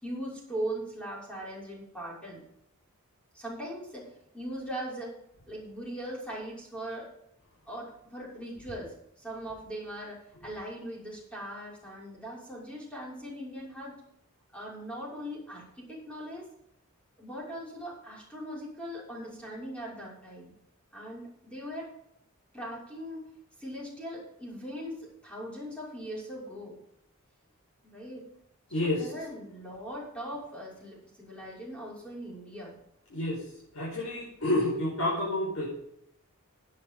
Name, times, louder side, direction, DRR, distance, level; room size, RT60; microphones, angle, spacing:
voice 1, 0.0-2.4 3.3-4.1 4.3-5.2 5.5-7.1 7.7-14.0 14.5-16.4 17.2-20.5 20.9-21.9 22.5-23.2 23.6-26.8 27.8-28.3 28.7-32.7, equal, 5° left, -5 dB, 6.0 m, -40 dB
voice 2, 28.7-29.1 33.1-33.4 33.7-35.8, left 1 dB, 80° left, -4 dB, 5.3 m, -29 dB
17.0 x 9.7 x 3.9 m, 0.75 s
head